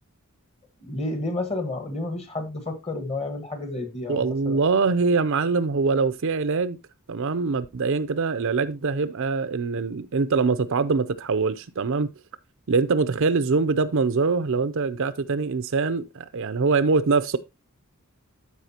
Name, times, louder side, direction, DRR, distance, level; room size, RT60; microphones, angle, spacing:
voice 1, 0.8-4.6, left 2 dB, 30° left, 1.5 m, -31 dB
voice 2, 4.1-6.8 7.1-12.1 12.7-17.4, right 4 dB, 60° right, 0.5 m, -23 dB
13.0 x 4.9 x 2.9 m
head